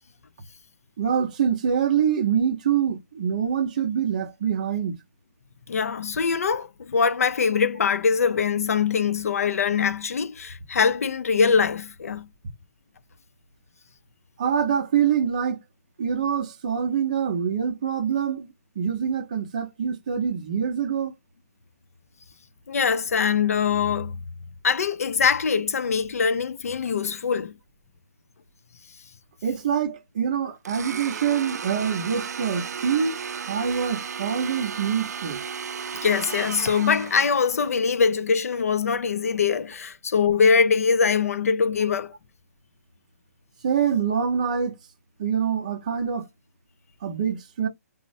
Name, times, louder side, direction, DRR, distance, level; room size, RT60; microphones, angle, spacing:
voice 1, 1.0-5.0 14.4-15.6 16.0-21.1 29.4-33.1 33.4-35.4 43.6-44.8 45.2-46.3 47.0-47.7, right 7 dB, 30° right, 0.6 m, -25 dB
voice 2, 5.7-12.3 22.7-24.2 24.6-27.5 36.0-42.1, left 6 dB, 65° left, 0.4 m, -23 dB
Domestic sounds home sounds, 30.6-37.7, right 6 dB, 90° right, 0.3 m, -34 dB
3.9 x 2.0 x 2.6 m
hypercardioid pair, 175°, 9 cm